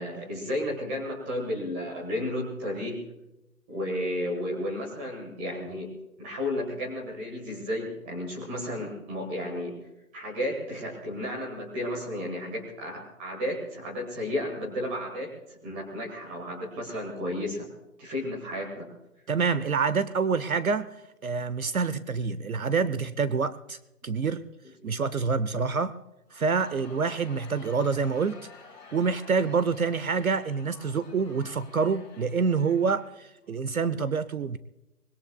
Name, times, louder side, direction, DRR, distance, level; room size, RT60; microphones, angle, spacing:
voice 1, 0.0-3.0 3.7-5.9 6.2-9.7 10.1-15.3 15.6-17.7 18.0-18.9 24.8-24.9, left 1 dB, 5° right, -2 dB, 1.4 m, -33 dB
voice 2, 19.3-21.0 21.2-23.8 24.0-24.4 24.8-25.9 26.3-28.4 28.9-34.6, right 5 dB, 60° right, 15 dB, 0.7 m, -27 dB
Crowd, 26.3-33.6, left 4 dB, 45° left, 4.5 m, -50 dB
24.5 x 20.5 x 2.3 m, 0.93 s
figure-of-eight pair, 165°, 47 cm